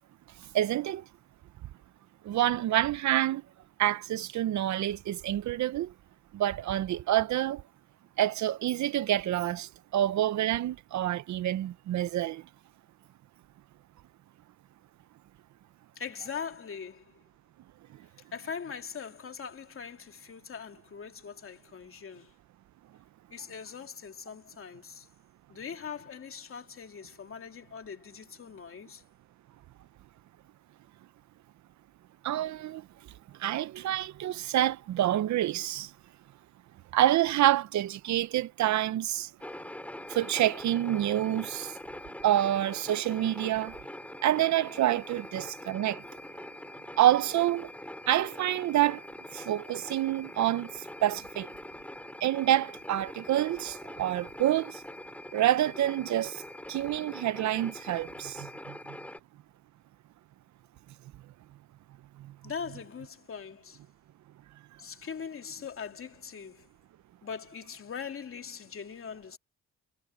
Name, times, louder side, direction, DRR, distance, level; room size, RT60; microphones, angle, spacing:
voice 1, 0.5-1.0 2.2-3.4 3.8-5.9 6.3-7.6 8.2-12.4 32.2-32.8 33.4-35.9 36.9-39.3 40.1-41.7 42.2-43.8 44.2-46.0 47.0-47.7 48.1-49.0 49.3-50.7 51.0-51.5 52.2-54.8 55.3-56.4 56.7-58.8 62.2-62.3, right 13 dB, 70° right, 0.8 m, -27 dB
voice 2, 15.9-17.2 18.3-22.3 23.3-25.1 25.5-29.0 62.4-63.8 64.8-66.7 67.2-69.4, left 6 dB, 45° left, 2.8 m, -41 dB
sound 1, 39.4-59.2, left 1 dB, 5° left, 5.7 m, -43 dB
cardioid pair, 90°, 30 cm